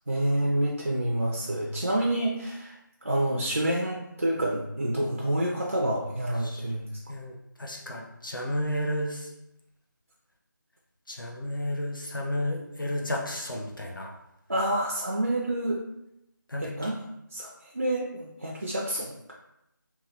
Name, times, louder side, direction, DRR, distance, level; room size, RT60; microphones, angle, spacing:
voice 1, 0.1-2.7 3.0-6.8 14.5-15.8 16.6-17.0 17.3-19.3, right 1 dB, 40° right, -3 dB, 0.4 m, -28 dB
voice 2, 7.6-9.3 11.1-14.1 16.5-16.9, left 1 dB, 75° left, 0 dB, 0.7 m, -32 dB
3.1 x 2.2 x 2.7 m, 0.84 s
figure-of-eight pair, 170°, 11 cm